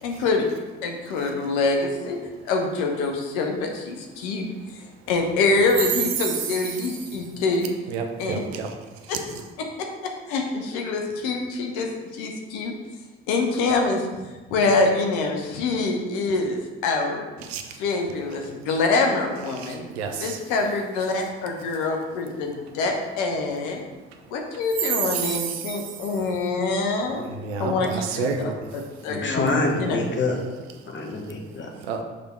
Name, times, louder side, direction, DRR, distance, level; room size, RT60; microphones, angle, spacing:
voice 1, 0.0-0.5 0.8-2.2 2.4-7.7 8.2-8.4 9.1-9.2 9.8-12.7 13.3-17.2 17.7-19.9 20.2-23.8 24.3-27.3 27.6-30.0, left 3 dB, 75° left, 2 dB, 0.9 m, -25 dB
voice 2, 7.9-8.7 9.0-9.2 17.4-17.8 19.5-20.4 25.1-26.0 27.3-28.7 31.8-32.0, right 5 dB, 80° right, 4 dB, 0.7 m, -30 dB
voice 3, 29.1-30.4 30.9-31.7, left 2 dB, 40° left, 1 dB, 1.3 m, -26 dB
6.3 x 3.5 x 4.4 m, 1.2 s
hypercardioid pair, 50°, 31 cm